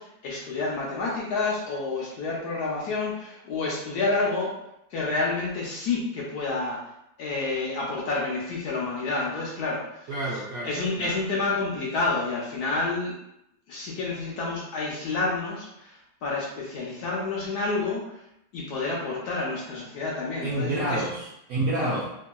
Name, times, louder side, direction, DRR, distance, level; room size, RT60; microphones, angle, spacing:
voice 1, 0.0-4.5 4.9-6.8 7.2-13.1 13.7-18.2 18.5-21.1 21.8-22.0, left 3 dB, 70° left, -4 dB, 1.0 m, -29 dB
voice 2, 10.1-11.2 20.4-22.1, right 2 dB, 75° right, -6 dB, 0.8 m, -29 dB
3.0 x 2.7 x 2.2 m, 0.81 s
omnidirectional pair, 2.0 m